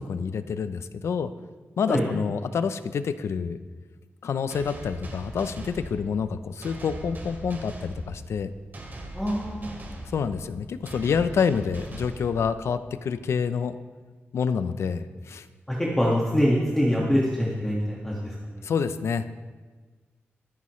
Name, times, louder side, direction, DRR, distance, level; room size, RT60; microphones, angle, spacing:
voice 1, 0.1-1.3 1.8-3.6 4.2-8.5 10.1-13.8 14.3-15.5 18.6-19.3, left 6 dB, 85° left, 12 dB, 0.6 m, -27 dB
sound 1, 4.5-13.0, right 1 dB, 45° right, 2.7 m, -40 dB
voice 2, 9.1-9.8 15.7-18.6, equal, 10° left, -4 dB, 1.8 m, -24 dB
23.5 x 9.6 x 3.2 m, 1.4 s
wide cardioid pair, 130°, 4 cm